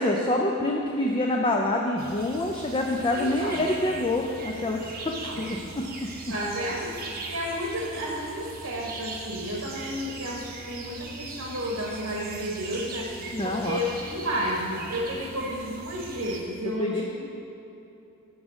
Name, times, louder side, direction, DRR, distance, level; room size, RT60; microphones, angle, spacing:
voice 1, 0.0-5.9 13.3-13.8 16.8-16.9 17.2-17.3, left 1 dB, 25° left, 0 dB, 0.5 m, -26 dB
sound 1, 2.0-16.4, right 3 dB, 40° right, 0.9 m, -40 dB
voice 2, 3.1-3.6 5.0-5.4 6.3-13.1 13.4-17.1, equal, 75° right, -3 dB, 1.4 m, -32 dB
11.0 x 3.7 x 6.4 m, 2.9 s
head